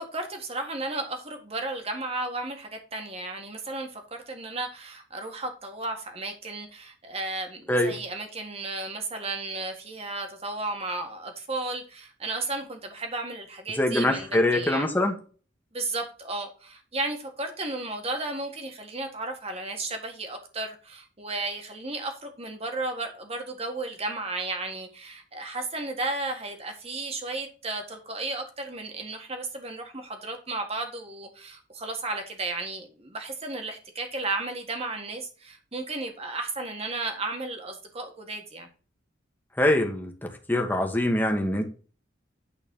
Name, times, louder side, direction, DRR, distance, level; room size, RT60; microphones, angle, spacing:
voice 1, 0.0-14.9 15.7-38.7, right 2 dB, 35° right, 1.6 m, -34 dB
voice 2, 13.8-15.1 39.6-41.7, left 1 dB, 10° left, 1.2 m, -24 dB
9.0 x 4.0 x 5.4 m
head